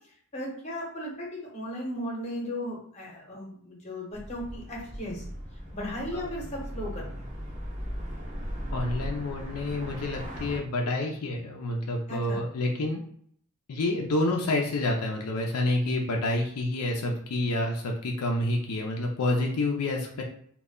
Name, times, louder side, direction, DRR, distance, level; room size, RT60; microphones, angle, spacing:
voice 1, 0.3-5.2 5.7-7.1 12.1-12.4, equal, 30° left, -3 dB, 0.8 m, -36 dB
sound 1, 4.1-10.6, equal, 35° right, 0.6 m, -37 dB
voice 2, 8.7-13.0 13.7-20.2, left 2 dB, 80° left, 1 dB, 0.4 m, -28 dB
2.3 x 2.1 x 3.5 m, 0.63 s
head